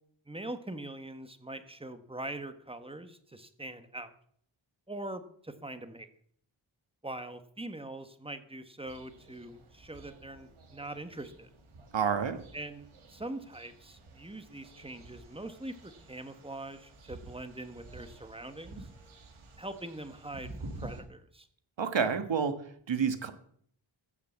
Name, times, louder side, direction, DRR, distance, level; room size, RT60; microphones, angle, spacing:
voice 1, 0.3-4.1 4.9-6.1 7.0-11.5 12.5-18.9 19.6-21.5, right 1 dB, 10° right, 9 dB, 1.4 m, -43 dB
sound 1, 8.8-21.0, right 2 dB, 85° right, 2.8 m, -50 dB
voice 2, 11.9-12.4 21.8-22.5 22.9-23.3, right 6 dB, 65° right, 9 dB, 1.6 m, -28 dB
14.5 x 6.9 x 8.0 m, 0.63 s
wide cardioid pair, 100°, 48 cm